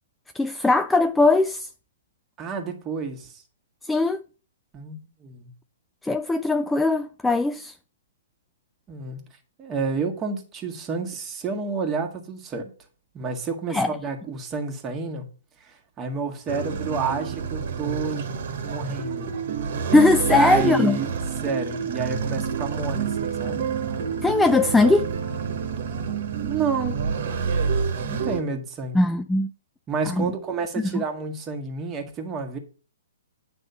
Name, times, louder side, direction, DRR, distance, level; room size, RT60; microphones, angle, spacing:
voice 1, 0.4-1.7 3.9-4.2 6.0-7.7 13.7-13.9 19.9-21.0 24.2-25.1 28.9-29.5 30.1-30.2 30.9-31.0, left 2 dB, 5° left, 0.3 m, -20 dB
voice 2, 2.4-3.4 4.7-5.5 8.9-9.2 9.6-12.7 13.1-15.3 15.6-18.3 18.6-19.3 20.2-21.1 21.4-23.7 26.4-27.0 28.0-29.0 29.9-32.6, right 4 dB, 20° right, 1.7 m, -30 dB
sound 1, 16.5-28.4, right 6 dB, 55° right, 1.7 m, -28 dB
9.1 x 3.6 x 6.8 m
hypercardioid pair, 130°, 0 cm